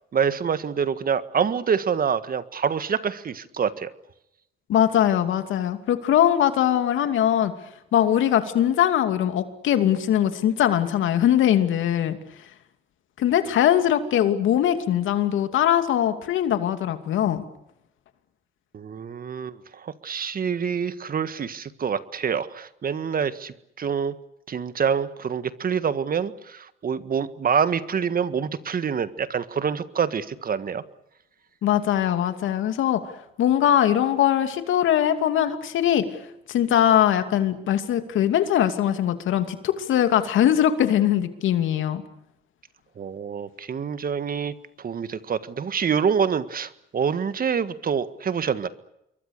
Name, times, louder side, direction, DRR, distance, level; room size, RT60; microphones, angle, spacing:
voice 1, 0.1-3.9 18.7-24.1 24.5-30.8 43.0-48.7, right 7 dB, 45° right, 13 dB, 1.7 m, -26 dB
voice 2, 4.7-7.5 7.9-12.2 13.2-17.4 31.6-33.0 33.4-36.0 36.5-42.0, left 10 dB, 80° left, 9 dB, 2.7 m, -21 dB
27.5 x 23.0 x 6.7 m, 0.81 s
cardioid pair, 90°, 20 cm